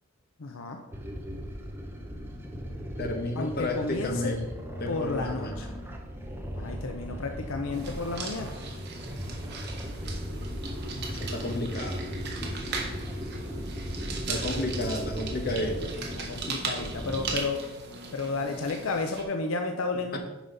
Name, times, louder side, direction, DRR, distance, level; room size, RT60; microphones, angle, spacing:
voice 1, 0.4-0.8 3.4-4.3 4.9-5.6 6.5-8.5 16.2-17.6 18.1-20.2, left 3 dB, 75° left, 4 dB, 0.6 m, -32 dB
sound 1, 0.9-17.4, equal, 10° right, 0.8 m, -37 dB
voice 2, 3.0-4.5 4.8-5.8 11.1-12.0 14.3-15.9 20.1-20.2, left 1 dB, 45° left, 3 dB, 1.1 m, -32 dB
sound 2, 7.7-19.2, right 4 dB, 50° right, 1.3 m, -38 dB
9.1 x 5.6 x 4.0 m, 1.1 s
head